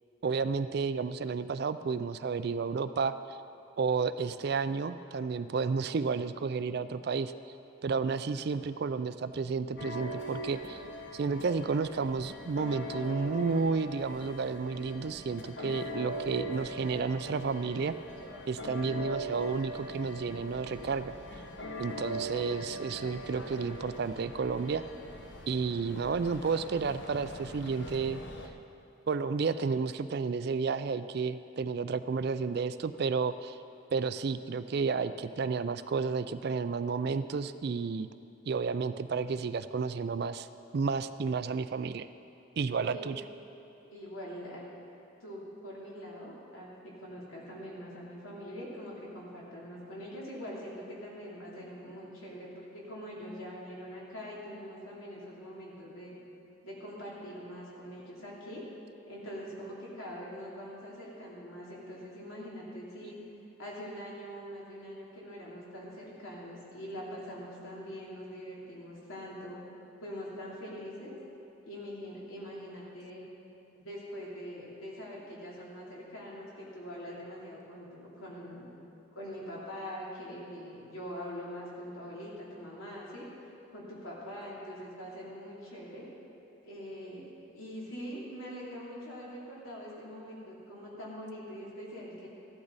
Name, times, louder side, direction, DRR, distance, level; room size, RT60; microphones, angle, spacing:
voice 1, 0.2-3.1 3.8-7.3 7.8-10.8 11.1-17.9 18.5-21.4 21.8-24.8 25.5-28.2 29.1-33.6 33.9-38.1 38.5-40.5 40.7-42.1 42.6-43.2, right 5 dB, 50° right, 13 dB, 0.3 m, -31 dB
sound 1, 9.8-28.5, equal, 55° left, 0.9 m, -41 dB
voice 2, 43.9-44.6 45.2-56.1 56.6-58.6 59.1-63.2 63.6-69.6 70.0-71.1 71.6-73.2 73.8-78.7 79.1-83.3 83.7-86.1 86.6-87.2 87.5-92.3, equal, 75° left, -5 dB, 3.1 m, -43 dB
14.5 x 12.0 x 4.1 m, 2.9 s
head